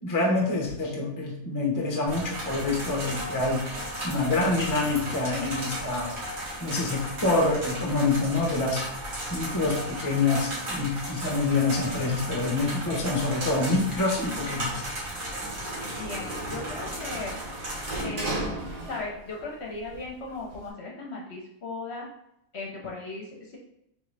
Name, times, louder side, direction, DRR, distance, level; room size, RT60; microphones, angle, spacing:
voice 1, 0.0-3.7 4.0-6.1 6.6-8.9 9.3-14.8, left 3 dB, 20° left, -1 dB, 0.7 m, -26 dB
sound 1, 2.1-18.0, equal, 85° right, 1.8 m, -35 dB
Sliding door, 14.6-19.4 19.8-20.7, right 1 dB, 40° right, 0.6 m, -36 dB
voice 2, 16.0-17.4 18.0-18.4 18.9-22.1 22.5-23.6, left 3 dB, 55° left, -1 dB, 1.0 m, -37 dB
3.7 x 3.7 x 3.3 m, 0.77 s
omnidirectional pair, 1.5 m